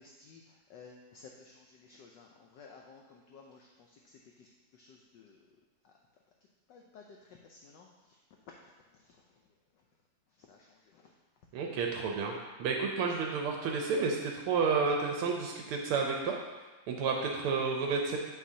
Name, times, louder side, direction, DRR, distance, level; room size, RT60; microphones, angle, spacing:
voice 1, 0.0-5.4 5.8-5.9 6.7-8.2 10.5-11.1, left 4 dB, 75° left, 0 dB, 1.1 m, -55 dB
voice 2, 11.5-12.3 12.6-16.4 16.9-18.2, right 5 dB, 80° right, 1 dB, 1.6 m, -31 dB
8.3 x 6.0 x 2.7 m, 1.2 s
omnidirectional pair, 2.4 m